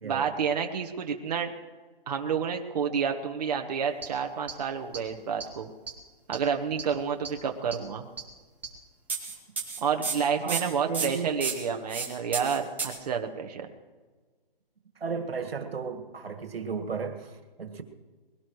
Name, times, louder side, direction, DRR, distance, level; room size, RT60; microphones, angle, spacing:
voice 1, 0.0-1.5 2.1-5.7 6.3-8.1 9.8-13.7, right 6 dB, 45° right, 4 dB, 1.2 m, -29 dB
sound 1, 4.0-4.1 4.5-4.6 4.9-5.0 5.4-5.5 5.9-6.0 6.3-6.4 6.8-6.9 7.2-7.3 7.7-7.8 8.2-8.3 8.6-8.7 9.1-12.1 12.3-13.0, right 5 dB, 5° right, 1.3 m, -32 dB
voice 2, 10.4-11.3 15.0-17.8, right 5 dB, 85° right, 7 dB, 1.9 m, -34 dB
21.5 x 17.5 x 3.2 m, 1.4 s
hypercardioid pair, 165°, 29 cm